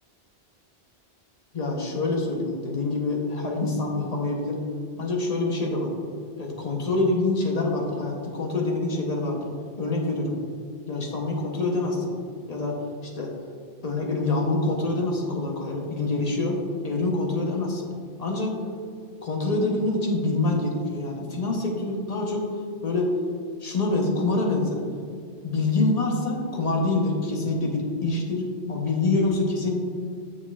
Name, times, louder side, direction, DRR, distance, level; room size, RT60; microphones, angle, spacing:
voice 1, 1.5-4.6 5.0-5.9 6.4-9.4 9.8-10.4 10.9-12.1 12.5-12.8 13.1-13.3 13.8-17.9 18.2-18.5 19.2-22.5 22.8-23.1 23.6-24.8 25.4-29.8, left 2 dB, 40° left, 0 dB, 0.9 m, -26 dB
7.4 x 6.2 x 2.4 m, 2.3 s
omnidirectional pair, 1.1 m